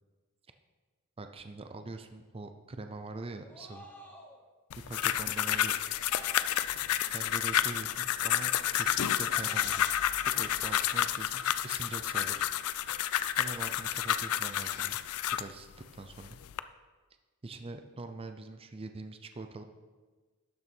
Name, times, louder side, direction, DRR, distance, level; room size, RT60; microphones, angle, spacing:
voice 1, 1.2-3.9 4.9-5.8 7.1-9.8 10.2-12.4 13.4-15.0 15.4-16.4 17.4-19.6, right 3 dB, 25° right, 7 dB, 0.5 m, -43 dB
sound 1, 3.3-4.4 6.1-6.9 9.2-10.0, equal, 10° left, 1.1 m, -51 dB
sound 2, 4.7-15.5 16.1-16.6, left 11 dB, 75° left, 0.4 m, -30 dB
12.0 x 6.8 x 4.5 m, 1.3 s
head